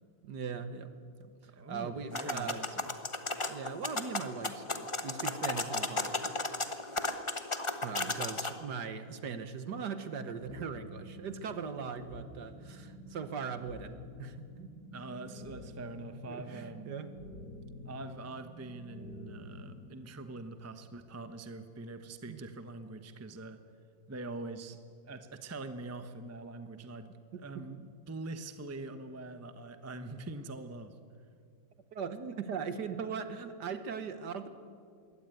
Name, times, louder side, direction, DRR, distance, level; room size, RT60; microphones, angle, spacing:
voice 1, 0.2-0.9 1.2-1.3 1.7-2.6 3.5-6.8 7.8-14.7 16.3-17.1 22.3-22.4 27.5-27.6 31.9-34.5, right 6 dB, 60° right, 10 dB, 1.7 m, -40 dB
voice 2, 1.5-2.9 14.9-16.9 17.8-23.6 24.1-24.8 25.1-27.1 27.4-30.9, right 2 dB, 10° right, 9 dB, 0.7 m, -44 dB
sound 1, 2.1-8.5, left 2 dB, 25° left, 0.8 m, -35 dB
sound 2, 10.4-20.4, left 1 dB, 55° left, 7.1 m, -49 dB
22.5 x 17.5 x 9.2 m, 2.2 s
omnidirectional pair, 2.1 m